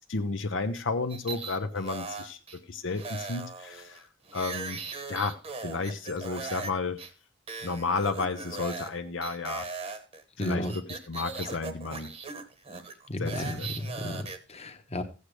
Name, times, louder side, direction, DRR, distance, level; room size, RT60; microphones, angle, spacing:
voice 1, 0.1-4.1 4.3-4.8 5.1-7.0 7.6-9.7 10.4-12.1 13.2-13.7, left 4 dB, 70° left, 0.8 m, -32 dB
sound 1, 1.1-2.6 2.9-6.7 7.0-7.1 7.5-8.9 9.2-14.4, right 4 dB, 30° right, 1.1 m, -39 dB
voice 2, 10.4-10.7 13.1-15.0, left 1 dB, 35° left, 1.1 m, -33 dB
15.0 x 8.0 x 3.3 m
head